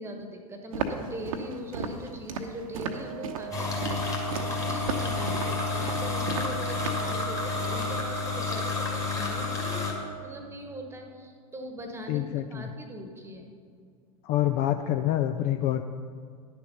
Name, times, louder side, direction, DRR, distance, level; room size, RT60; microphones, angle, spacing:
voice 1, 0.0-12.2 12.5-13.5, right 1 dB, 15° right, 4 dB, 1.3 m, -41 dB
Walk footsteps, 0.7-7.1, right 4 dB, 60° right, 0.9 m, -35 dB
Wind instrument woodwind instrument, 2.7-10.5, right 19 dB, 35° right, 0.5 m, -40 dB
sound 1, 3.5-9.9, left 5 dB, 15° left, 2.0 m, -30 dB
voice 2, 12.1-12.7 14.2-15.8, left 12 dB, 35° left, 8 dB, 0.4 m, -26 dB
10.5 x 7.0 x 5.4 m, 2.2 s
figure-of-eight pair, 90°, 20 cm